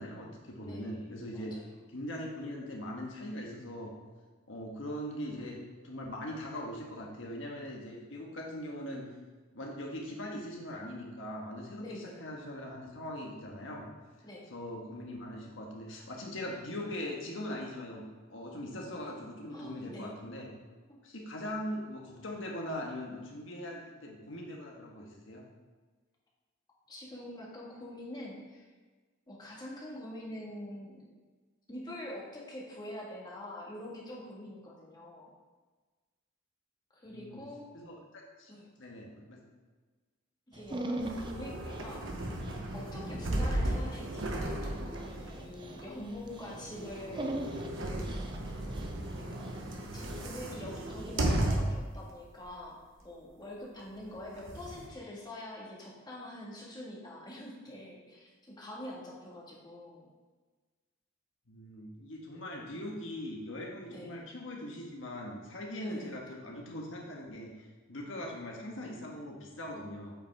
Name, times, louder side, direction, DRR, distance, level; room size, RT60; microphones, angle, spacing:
voice 1, 0.0-1.5 1.9-3.9 4.5-9.1 9.5-13.9 14.5-18.0 18.3-20.5 21.0-25.5 37.1-37.4 37.7-39.4 61.5-70.1, left 1 dB, 75° left, -1 dB, 1.5 m, -41 dB
voice 2, 0.6-1.7 11.8-12.2 14.2-14.5 19.5-20.1 20.9-21.0 26.9-28.7 29.3-31.1 31.7-35.3 36.9-37.7 38.5-38.7 40.5-42.1 42.7-47.7 49.2-49.4 49.9-52.8 53.0-60.1 63.9-64.1 65.8-66.2, left 1 dB, 20° left, -4 dB, 1.7 m, -45 dB
Dog, 40.5-51.4, right 1 dB, 25° right, 0.6 m, -43 dB
sound 1, 41.0-52.0 52.4-52.5 54.0-54.9, right 1 dB, 80° right, 1.0 m, -35 dB
8.4 x 5.7 x 3.5 m, 1.4 s
head